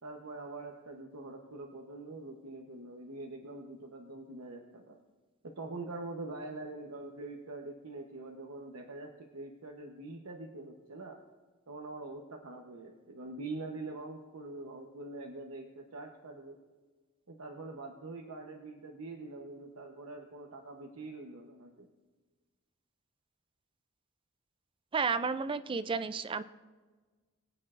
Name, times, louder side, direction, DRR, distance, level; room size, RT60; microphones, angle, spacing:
voice 1, 0.0-5.0 5.4-11.2 11.7-16.6 17.3-21.9, right 2 dB, 85° right, 2 dB, 0.9 m, -44 dB
voice 2, 24.9-26.4, right 5 dB, 25° right, 13 dB, 0.3 m, -32 dB
22.5 x 8.9 x 2.5 m, 1.3 s
head